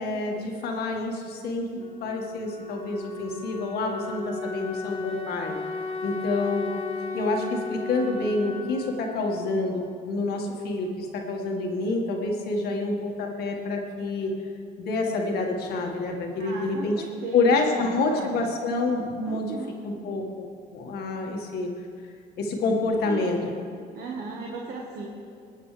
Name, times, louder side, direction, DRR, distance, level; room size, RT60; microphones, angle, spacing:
voice 1, 0.0-1.7 2.0-5.5 6.0-6.7 7.1-14.3 14.8-17.0 17.3-19.6 19.8-21.7 22.4-23.4, left 3 dB, 70° left, 1 dB, 1.7 m, -27 dB
Wind instrument woodwind instrument, 1.7-10.4, left 3 dB, 35° left, 1.7 m, -36 dB
voice 2, 16.4-18.5 19.2-19.8 23.0-23.4 23.9-25.1, right 4 dB, 65° right, -1 dB, 1.4 m, -36 dB
20.0 x 9.0 x 3.3 m, 2.4 s
cardioid pair, 110°, 17 cm